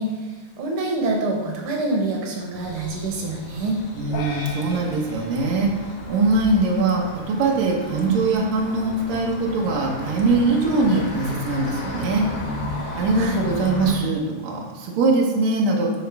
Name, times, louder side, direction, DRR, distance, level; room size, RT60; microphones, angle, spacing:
voice 1, 0.0-3.8 13.1-13.4, right 2 dB, 70° right, 0 dB, 2.0 m, -26 dB
sound 1, 2.5-14.0, left 1 dB, 55° left, 2.5 m, -34 dB
voice 2, 4.0-5.7 6.1-12.3 12.9-15.9, right 3 dB, 90° right, -1 dB, 1.5 m, -22 dB
sound 2, 4.1-6.6, left 3 dB, 75° left, 1.9 m, -37 dB
11.5 x 4.1 x 3.4 m, 1.3 s
omnidirectional pair, 4.7 m